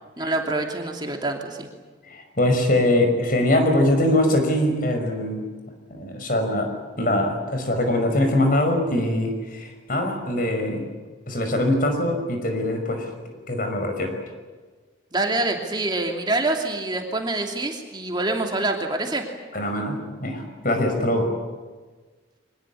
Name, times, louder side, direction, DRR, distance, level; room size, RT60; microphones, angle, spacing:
voice 1, 0.2-1.7 15.1-19.2, right 2 dB, 25° right, 2 dB, 2.8 m, -26 dB
voice 2, 2.0-5.4 5.9-10.9 11.3-13.1 13.5-14.1 19.5-21.3, left 1 dB, 50° left, 5 dB, 5.6 m, -22 dB
24.5 x 20.0 x 10.0 m, 1.4 s
head